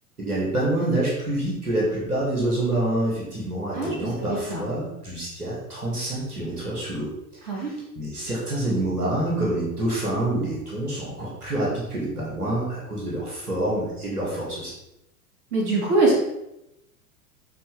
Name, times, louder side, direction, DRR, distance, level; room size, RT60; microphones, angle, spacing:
voice 1, 0.2-7.1 7.5-14.7, right 1 dB, 85° right, -6 dB, 2.7 m, -27 dB
voice 2, 3.7-4.6 7.5-7.7 15.5-16.2, right 2 dB, 50° right, -2 dB, 2.9 m, -23 dB
11.5 x 4.4 x 3.6 m, 0.86 s
figure-of-eight pair, 85°, 45 cm